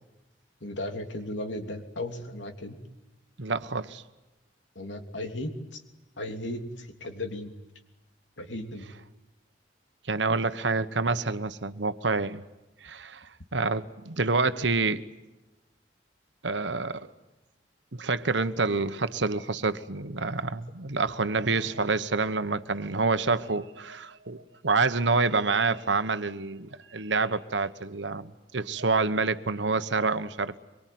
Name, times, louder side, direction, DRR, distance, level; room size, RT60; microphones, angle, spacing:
voice 1, 0.6-2.8 4.7-5.8 6.2-7.5 8.4-8.9, left 1 dB, 85° left, 3.2 m, -36 dB
voice 2, 3.4-4.0 10.1-12.4 12.8-15.0 16.4-17.1 17.9-30.6, right 3 dB, 75° right, 1.2 m, -27 dB
24.5 x 23.5 x 9.4 m
head